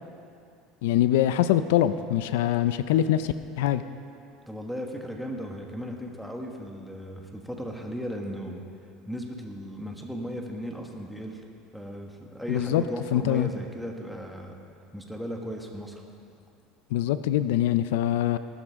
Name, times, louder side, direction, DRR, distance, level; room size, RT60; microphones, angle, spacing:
voice 1, 0.8-3.8 12.5-12.8 13.1-13.5 16.9-18.4, left 12 dB, 90° left, 12 dB, 0.5 m, -23 dB
voice 2, 4.5-8.6 9.1-11.4 11.7-14.5 14.9-16.0, equal, ahead, 1 dB, 1.5 m, -36 dB
19.0 x 12.5 x 3.7 m, 2.4 s
supercardioid pair, 135°, 0 cm